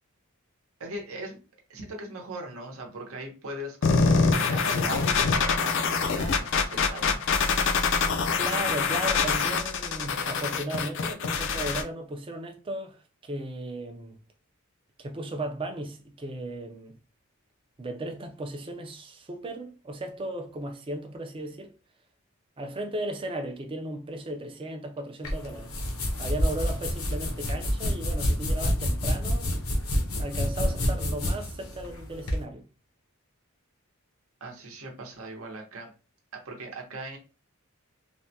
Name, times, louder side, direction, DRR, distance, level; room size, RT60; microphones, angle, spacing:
voice 1, 0.8-1.4 1.7-7.2 22.7-22.8 34.4-35.9 36.3-37.2, right 2 dB, 70° right, 0.8 m, -39 dB
sound 1, 3.8-11.8, left 5 dB, 55° left, 0.4 m, -25 dB
voice 2, 8.3-14.2 15.0-17.0 17.8-21.7 22.6-25.7 26.2-29.5 30.1-32.6, right 1 dB, 25° right, 0.4 m, -36 dB
sound 2, 25.2-32.4, equal, 75° left, 0.8 m, -28 dB
3.4 x 2.1 x 2.7 m
head